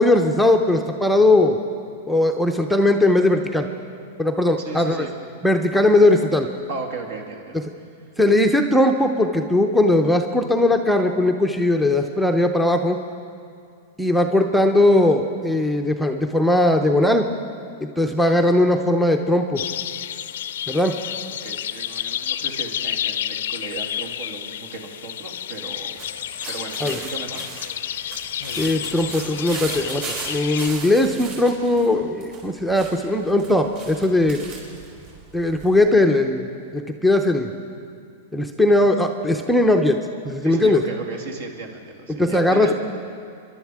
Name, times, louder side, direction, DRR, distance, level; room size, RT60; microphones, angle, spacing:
voice 1, 0.0-1.6 2.1-3.7 4.2-5.0 5.4-6.5 8.2-13.0 14.0-17.3 17.8-19.6 20.7-20.9 26.8-27.0 28.6-34.4 35.3-37.5 38.3-40.0 40.2-40.8 42.2-42.7, left 1 dB, ahead, 3 dB, 0.6 m, -19 dB
voice 2, 4.6-5.2 5.7-5.8 6.7-7.6 21.4-26.0 26.5-27.5 40.4-42.7, right 3 dB, 65° right, 2 dB, 2.1 m, -35 dB
sound 1, 19.5-30.7, left 10 dB, 80° left, 0.5 m, -30 dB
sound 2, 26.0-35.8, right 4 dB, 45° right, 4.1 m, -37 dB
29.0 x 11.5 x 3.6 m, 2.4 s
supercardioid pair, 150°, 0 cm